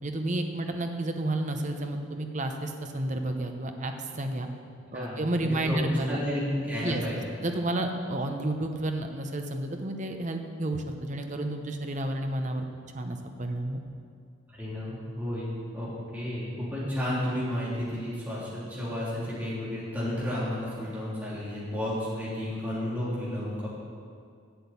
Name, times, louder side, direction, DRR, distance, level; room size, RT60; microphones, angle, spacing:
voice 1, 0.0-4.5 4.9-6.2 6.8-7.0 7.4-12.7 12.9-13.8, right 1 dB, 40° right, 5 dB, 0.9 m, -31 dB
voice 2, 4.9-7.2 14.6-23.7, left 1 dB, 10° right, -9 dB, 3.4 m, -32 dB
8.1 x 7.8 x 8.3 m, 2.2 s
head